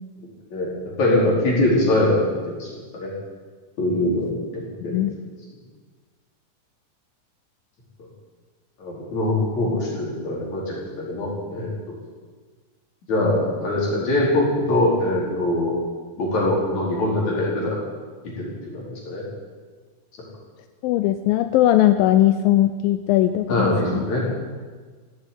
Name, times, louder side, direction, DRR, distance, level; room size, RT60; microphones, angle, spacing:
voice 1, 1.0-3.1 3.8-5.0 8.8-12.0 13.1-15.7 16.2-17.8 18.4-19.3 23.5-24.3, left 1 dB, 55° left, -4 dB, 5.8 m, -23 dB
voice 2, 4.8-5.1 20.8-24.0, left 13 dB, 90° left, 10 dB, 2.4 m, -19 dB
16.0 x 8.9 x 9.9 m, 1.5 s
omnidirectional pair, 4.0 m